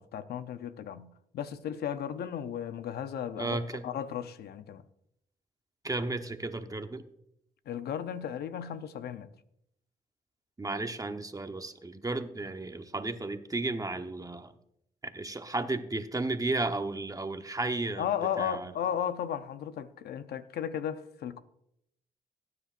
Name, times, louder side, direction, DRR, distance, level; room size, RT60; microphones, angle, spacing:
voice 1, 0.0-4.8 7.7-9.3 18.0-21.4, left 9 dB, 85° left, 0.7 m, -35 dB
voice 2, 3.4-3.9 5.8-7.0 10.6-14.5 15.0-18.1 18.4-18.7, right 2 dB, 20° right, 1.0 m, -33 dB
18.0 x 9.7 x 2.5 m
cardioid pair, 65°, 16 cm